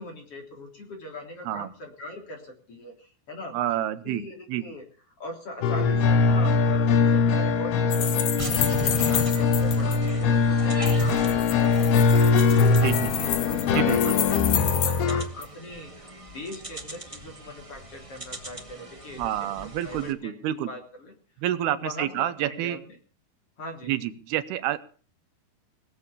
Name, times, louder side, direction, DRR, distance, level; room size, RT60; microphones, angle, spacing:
voice 1, 0.0-3.5 4.0-4.8 5.2-13.0 13.5-19.3 19.6-21.1 21.7-23.0 23.6-24.0, left 1 dB, 35° left, 2 dB, 4.3 m, -40 dB
voice 2, 3.5-4.2 4.5-4.7 12.8-13.3 13.7-14.2 19.2-20.7 21.4-22.8 23.9-24.8, right 12 dB, 80° right, 13 dB, 2.8 m, -28 dB
sound 1, 5.6-15.2, left 4 dB, 80° left, 3.4 m, -22 dB
sound 2, 7.9-10.0 10.9-15.0 15.4-15.5, left 10 dB, 60° left, 2.2 m, -30 dB
sound 3, 8.4-20.1, right 1 dB, 50° right, 0.3 m, -39 dB
19.5 x 7.5 x 8.2 m, 0.41 s
omnidirectional pair, 4.6 m